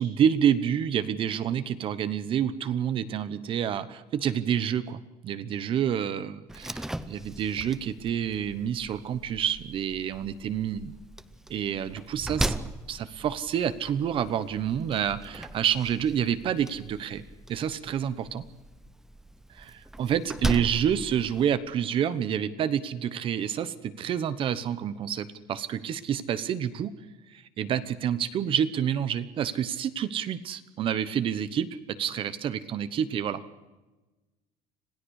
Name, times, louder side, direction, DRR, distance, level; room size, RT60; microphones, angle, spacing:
voice 1, 0.0-10.9 11.5-12.5 12.9-17.2 17.5-18.4 19.5-26.9 27.3-33.6, right 9 dB, 35° right, 14 dB, 1.1 m, -28 dB
Slam, 6.5-21.6, right 1 dB, 5° right, 0.6 m, -38 dB
26.5 x 17.0 x 6.5 m, 1.1 s
cardioid pair, 180°, 15 cm